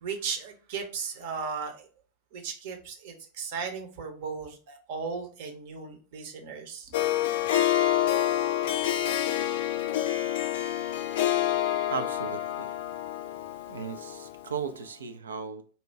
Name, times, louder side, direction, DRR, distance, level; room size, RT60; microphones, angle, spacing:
voice 1, 0.0-1.9 2.3-7.0, right 5 dB, 50° right, 0.8 m, -36 dB
Harp, 6.9-14.4, left 12 dB, 55° left, 0.4 m, -27 dB
voice 2, 11.9-12.7 13.7-15.6, right 6 dB, 70° right, 0.4 m, -36 dB
4.1 x 2.3 x 3.4 m
figure-of-eight pair, 90°, 0 cm